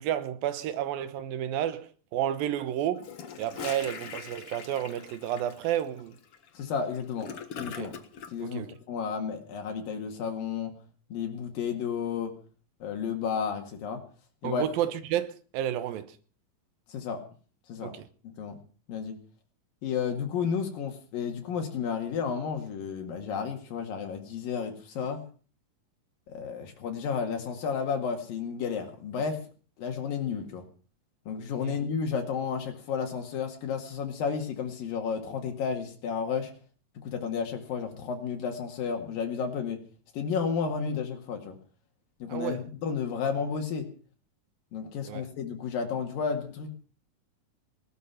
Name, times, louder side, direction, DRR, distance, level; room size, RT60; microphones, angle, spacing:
voice 1, 0.0-3.1 3.4-6.1 7.8-8.0 8.4-8.7 14.4-16.2 17.8-18.1 31.6-31.8 42.3-42.7 45.1-45.2, right 11 dB, 85° right, 2.9 m, -31 dB
Gurgling / Toilet flush, 3.0-8.3, left 6 dB, 50° left, 2.0 m, -42 dB
voice 2, 6.6-7.9 8.3-8.6 8.9-10.7 11.1-12.4 12.8-14.0 14.4-14.6 16.9-17.2 17.7-17.9 18.4-18.6 18.9-19.2 19.8-25.2 26.3-29.4 29.8-30.7 31.3-36.5 37.0-39.8 40.1-41.6 42.2-43.9 44.7-46.7, left 6 dB, 80° left, 3.7 m, -32 dB
19.0 x 13.0 x 5.7 m
omnidirectional pair, 4.0 m